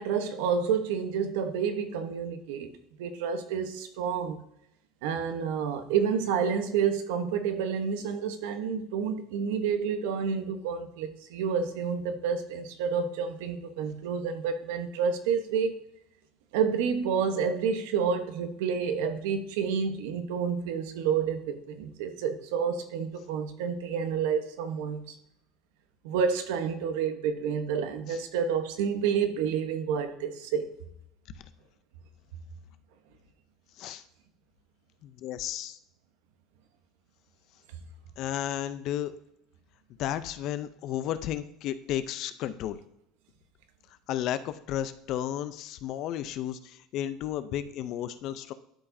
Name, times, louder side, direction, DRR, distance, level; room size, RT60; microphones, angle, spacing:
voice 1, 0.0-4.4 5.0-15.9 16.5-25.2 26.0-30.7, right 6 dB, 85° right, 0.9 m, -29 dB
voice 2, 35.0-35.8 38.2-39.1 40.0-42.8 44.1-48.5, left 11 dB, 45° left, 0.4 m, -33 dB
11.5 x 4.8 x 2.6 m
cardioid pair, 165°, 0 cm